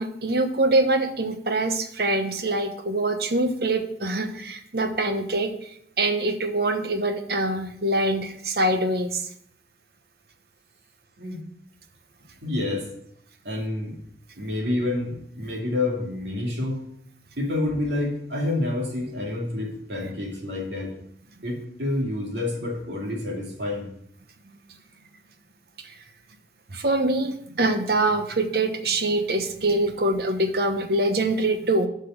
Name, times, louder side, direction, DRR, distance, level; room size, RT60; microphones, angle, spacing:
voice 1, 0.0-5.7 6.0-9.3 26.7-31.9, right 2 dB, 60° right, 7 dB, 1.0 m, -24 dB
voice 2, 12.4-12.9 13.4-14.0 14.4-16.8 17.4-20.9 21.4-23.9, left 2 dB, 80° right, -1 dB, 2.6 m, -28 dB
7.9 x 5.4 x 6.3 m, 0.68 s
head